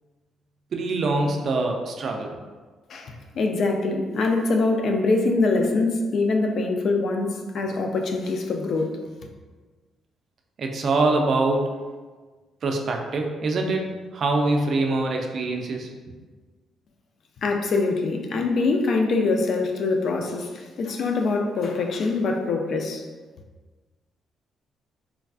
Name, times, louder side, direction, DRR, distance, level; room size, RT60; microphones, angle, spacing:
voice 1, 0.7-2.3 10.6-11.8 12.6-15.9, right 2 dB, 55° right, 2 dB, 0.4 m, -24 dB
voice 2, 2.9-9.0 17.4-23.0, left 3 dB, 60° left, 3 dB, 0.3 m, -24 dB
3.3 x 2.3 x 2.3 m, 1.4 s
cardioid pair, 90°, 0 cm